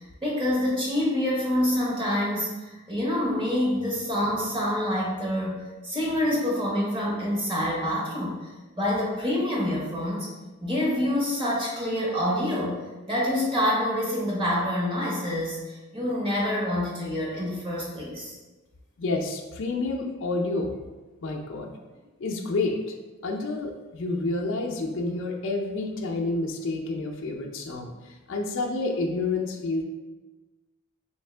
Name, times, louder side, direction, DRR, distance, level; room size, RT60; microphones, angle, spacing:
voice 1, 0.2-8.5 8.8-10.3 10.6-18.4, left 1 dB, 25° right, -5 dB, 0.9 m, -27 dB
voice 2, 19.0-20.7 21.2-21.7 22.2-22.9 23.2-29.8, left 2 dB, 55° left, 0 dB, 0.4 m, -29 dB
3.5 x 3.1 x 3.2 m, 1.2 s
head